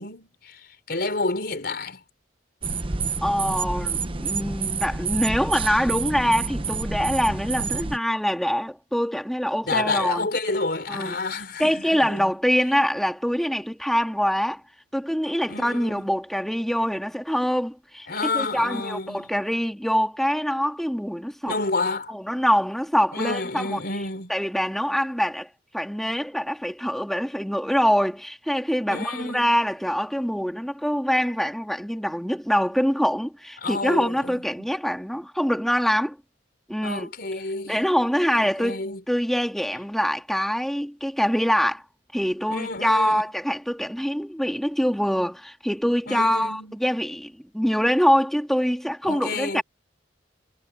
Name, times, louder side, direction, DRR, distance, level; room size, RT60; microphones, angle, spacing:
voice 1, 0.0-2.0 9.6-12.3 15.5-16.1 18.1-19.3 21.4-22.1 23.1-24.3 28.9-29.5 33.6-34.4 36.8-37.8 38.4-39.0 42.5-43.2 46.1-46.8 49.0-49.6, left 3 dB, 60° left, 4.6 m, -29 dB
sound 1, 2.6-8.0, right 4 dB, 30° right, 0.9 m, -28 dB
voice 2, 3.2-10.3 10.9-11.2 11.6-14.6 14.9-18.1 18.3-21.5 22.1-23.8 24.3-25.5 25.7-36.2 36.7-37.1 37.7-41.8 42.1-49.6, equal, ahead, 2.0 m, -24 dB
head